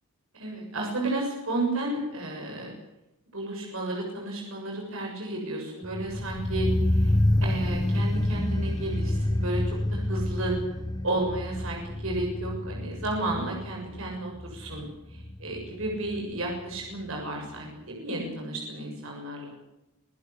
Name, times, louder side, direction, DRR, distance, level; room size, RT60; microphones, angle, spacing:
voice 1, 0.3-2.7 3.3-7.1 7.4-10.5 11.0-14.8 15.1-19.5, right 2 dB, 65° right, 0 dB, 7.0 m, -32 dB
sound 1, 5.8-16.9 17.1-17.2, left 1 dB, 15° left, 1.1 m, -28 dB
26.5 x 16.5 x 8.5 m, 0.91 s
head